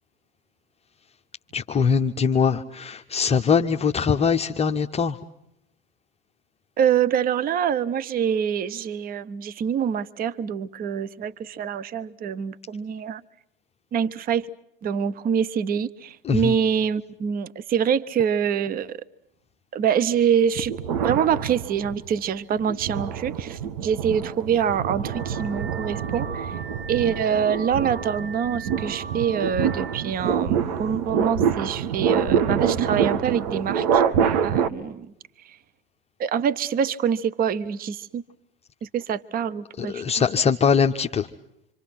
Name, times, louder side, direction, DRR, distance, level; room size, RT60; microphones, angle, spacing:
voice 1, 1.5-5.2 16.2-16.6 39.8-41.3, left 6 dB, 20° left, 1.0 m, -22 dB
voice 2, 6.8-13.2 13.9-14.5 14.8-19.0 19.7-20.7 21.0-26.5 26.9-34.0 34.4-35.1 36.2-38.2 38.8-40.0, right 8 dB, 30° right, 1.1 m, -25 dB
sound 1, 20.6-22.1 22.6-34.7, right 7 dB, 50° right, 1.9 m, -26 dB
Car / Alarm, 24.7-30.1, right 4 dB, 70° right, 1.3 m, -40 dB
27.0 x 26.0 x 5.9 m
figure-of-eight pair, 85°, 30 cm